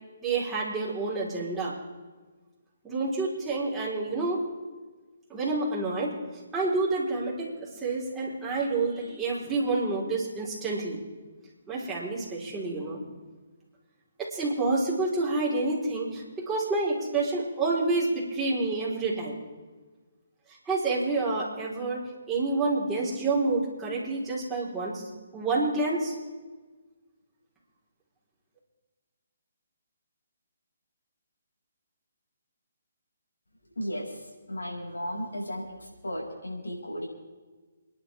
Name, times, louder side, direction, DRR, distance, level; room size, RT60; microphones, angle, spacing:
voice 1, 0.2-1.8 2.8-4.4 5.3-6.1 6.5-11.0 11.7-13.0 14.2-19.4 20.7-25.0 25.3-26.1, right 3 dB, 10° right, -6 dB, 4.3 m, -28 dB
voice 2, 33.7-37.1, equal, 85° left, -3 dB, 6.4 m, -35 dB
29.0 x 11.0 x 3.6 m, 1.3 s
hypercardioid pair, 145°, 0 cm